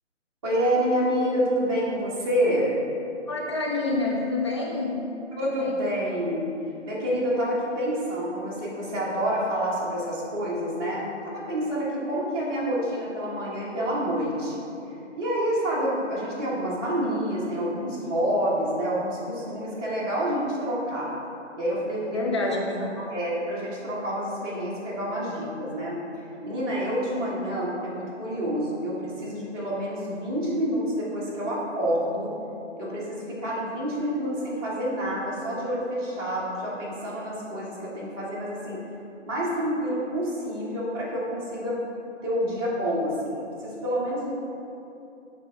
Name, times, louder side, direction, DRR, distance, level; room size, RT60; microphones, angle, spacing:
voice 1, 0.4-2.8 5.4-6.5 6.8-14.6 15.2-21.1 21.5-22.2 22.5-22.6 23.1-26.0 26.4-32.3 32.8-38.8 39.2-41.8 42.2-44.3, equal, 20° right, -8 dB, 1.3 m, -28 dB
voice 2, 3.3-5.0 5.4-5.8 22.0-22.9, left 2 dB, 25° left, -2 dB, 0.4 m, -28 dB
9.2 x 3.4 x 3.7 m, 2.8 s
figure-of-eight pair, 150°, 36 cm